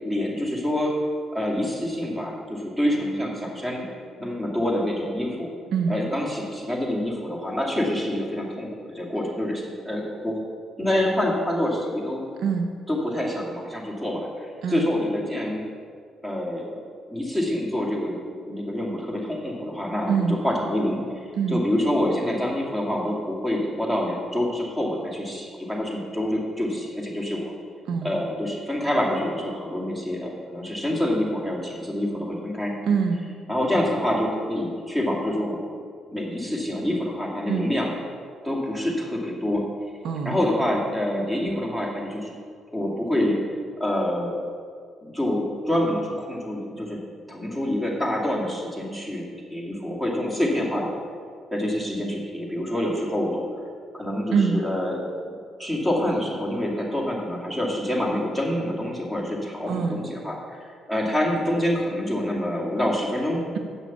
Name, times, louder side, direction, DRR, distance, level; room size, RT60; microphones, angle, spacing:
voice 1, 0.0-1.0 1.3-3.8 4.2-5.5 5.9-10.4 10.8-12.2 12.9-15.6 16.2-16.8 17.1-18.2 18.4-27.5 28.0-32.7 33.5-35.6 36.1-37.9 38.4-39.6 40.2-42.3 42.7-43.4 43.8-44.4 45.0-47.0 47.3-49.2 49.5-51.0 51.5-53.5 53.9-55.0 55.6-63.4, left 1 dB, 10° right, -2 dB, 2.4 m, -26 dB
voice 2, 12.4-12.7 14.6-14.9 20.1-20.4 21.4-21.6 27.9-28.1 32.9-33.2 37.5-37.7 40.0-40.4 54.3-54.6 59.7-60.0, right 6 dB, 75° right, 5 dB, 0.7 m, -24 dB
8.6 x 6.2 x 7.0 m, 2.1 s
cardioid pair, 90°, 0 cm